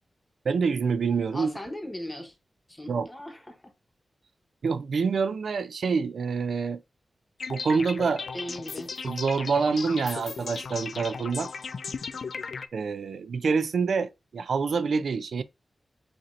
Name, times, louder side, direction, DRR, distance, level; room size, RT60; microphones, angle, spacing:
voice 1, 0.5-1.5 2.9-3.1 4.6-6.8 7.5-8.3 9.0-11.5 12.7-15.4, right 5 dB, 85° right, 0.3 m, -26 dB
voice 2, 1.3-2.3 2.7-3.7 8.3-8.9, left 1 dB, 15° left, 1.0 m, -38 dB
sound 1, 7.4-12.7, left 5 dB, 70° left, 0.3 m, -36 dB
4.9 x 2.8 x 3.1 m
wide cardioid pair, 140°, 0 cm